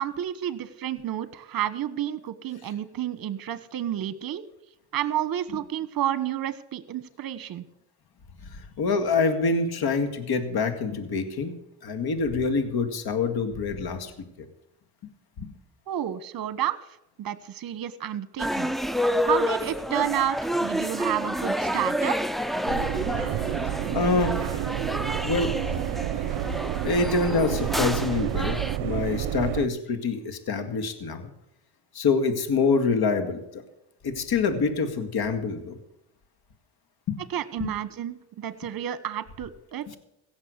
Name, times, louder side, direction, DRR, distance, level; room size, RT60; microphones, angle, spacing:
voice 1, 0.0-4.4 4.9-7.6 15.9-16.8 17.2-18.7 19.2-22.2 37.3-40.0, right 11 dB, 50° right, 15 dB, 1.3 m, -30 dB
voice 2, 8.4-11.5 11.8-14.1 15.4-15.5 23.9-24.6 25.2-25.5 26.8-31.3 31.9-33.6 34.0-35.8 37.1-37.2 37.6-37.7 39.9-40.0, left 4 dB, 55° left, 8 dB, 2.2 m, -26 dB
sound 1, 18.4-28.8, equal, ahead, 0.4 m, -29 dB
sound 2, 22.7-29.7, right 14 dB, 65° right, 0.7 m, -30 dB
16.5 x 7.2 x 8.1 m, 0.87 s
supercardioid pair, 85°, 46 cm